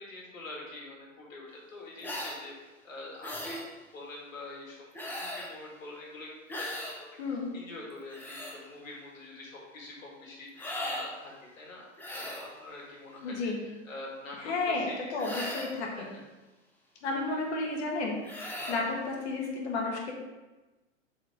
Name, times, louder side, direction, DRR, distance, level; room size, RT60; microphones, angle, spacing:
voice 1, 0.0-3.6 3.9-15.1 16.0-16.2 17.0-17.5 18.5-18.7, left 2 dB, 80° left, -2 dB, 2.2 m, -45 dB
sound 1, 2.0-2.4 3.2-3.7 4.9-5.5 6.5-7.0 7.9-8.6 10.6-11.1 12.0-12.5 15.2-15.8 18.2-18.8, left 1 dB, 5° left, 0.8 m, -37 dB
voice 2, 7.2-7.5 13.2-13.6 14.4-16.1 17.0-20.1, left 3 dB, 55° left, -1 dB, 1.9 m, -32 dB
7.1 x 4.1 x 3.7 m, 1.1 s
hypercardioid pair, 125°, 39 cm